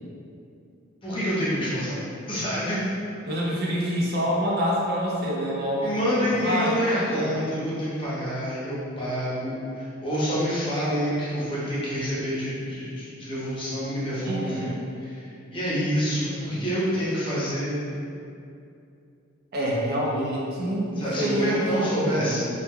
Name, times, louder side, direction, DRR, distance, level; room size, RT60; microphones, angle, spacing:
voice 1, 1.0-2.0 2.3-2.8 5.8-14.7 15.0-17.8 21.0-22.5, equal, 25° left, -9 dB, 0.6 m, -27 dB
voice 2, 3.2-7.3 14.2-14.7 16.5-16.6 19.5-22.4, equal, 50° right, -4 dB, 0.4 m, -27 dB
2.2 x 2.2 x 3.1 m, 2.6 s
head